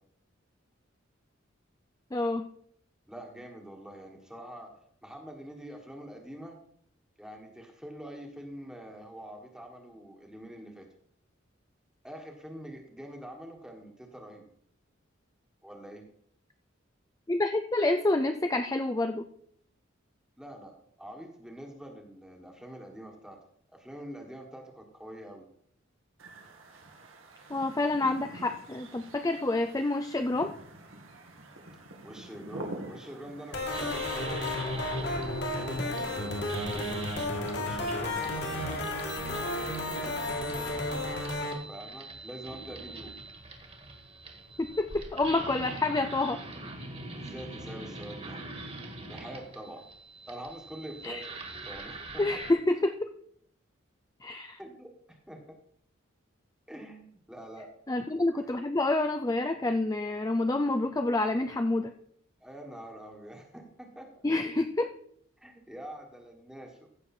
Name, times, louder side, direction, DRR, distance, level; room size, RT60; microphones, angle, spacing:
voice 1, 2.1-2.4 17.3-19.2 27.5-30.5 44.6-46.4 51.0-51.2 52.2-53.1 54.2-54.6 57.9-61.9 64.2-64.9, left 2 dB, 15° left, 7 dB, 0.5 m, -28 dB
voice 2, 3.1-4.7 5.0-6.6 7.2-10.9 12.0-14.5 15.6-16.0 20.4-23.4 23.7-25.5 32.0-35.1 35.4-37.0 37.5-40.3 41.7-43.1 47.1-48.4 49.1-49.8 50.3-51.3 51.6-52.4 54.6-55.4 56.7-57.7 58.0-58.5 62.4-64.2 65.4-67.0, right 1 dB, 5° right, 1 dB, 1.5 m, -45 dB
sound 1, 26.2-41.3, right 2 dB, 85° right, 1.9 m, -48 dB
sound 2, 33.5-41.5, left 1 dB, 55° left, 2.2 m, -32 dB
sound 3, 33.7-52.5, right 2 dB, 30° right, 1.9 m, -43 dB
15.0 x 6.7 x 4.3 m, 0.65 s
head